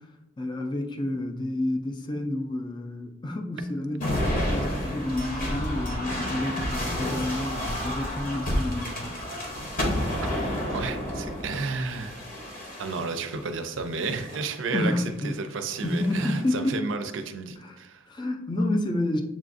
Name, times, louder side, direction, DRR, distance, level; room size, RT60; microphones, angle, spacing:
voice 1, 0.4-9.1 14.7-15.3 15.8-16.9 17.6-17.8 18.1-19.2, left 1 dB, 20° left, 4 dB, 0.4 m, -29 dB
Pirat-battle, 4.0-13.4 14.1-14.6 15.7-16.4, equal, 45° left, 0.8 m, -30 dB
voice 2, 10.7-12.2 12.8-18.1, right 4 dB, 65° right, 8 dB, 0.4 m, -32 dB
7.2 x 2.4 x 2.5 m, 1.0 s
head